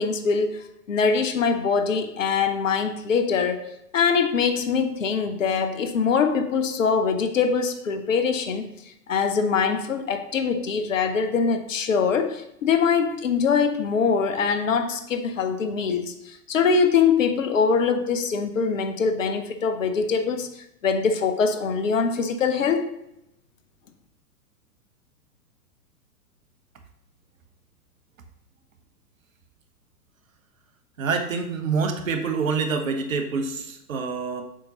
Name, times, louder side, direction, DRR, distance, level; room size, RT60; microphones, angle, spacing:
voice 1, 0.0-8.7 9.1-22.9, left 5 dB, 55° left, 8 dB, 0.8 m, -23 dB
voice 2, 31.0-34.4, right 5 dB, 55° right, 7 dB, 0.9 m, -26 dB
7.4 x 5.1 x 2.8 m, 0.81 s
figure-of-eight pair, 110°, 47 cm